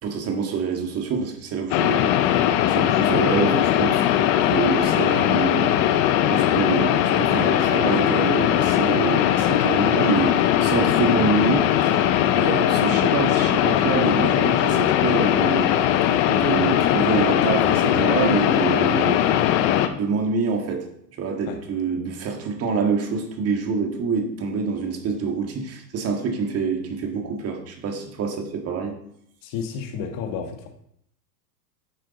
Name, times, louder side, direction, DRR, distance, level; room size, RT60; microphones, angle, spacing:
voice 1, 0.0-4.0 4.5-5.7 6.3-12.0 12.3-15.7 16.3-19.2 19.9-20.9 21.2-29.0, right 5 dB, 30° right, 4 dB, 1.8 m, -26 dB
sound 1, 1.7-19.9, left 11 dB, 25° left, 0.4 m, -20 dB
voice 2, 29.4-30.7, left 6 dB, 40° left, 4 dB, 1.7 m, -32 dB
10.0 x 6.6 x 4.1 m, 0.72 s
hypercardioid pair, 125°, 50 cm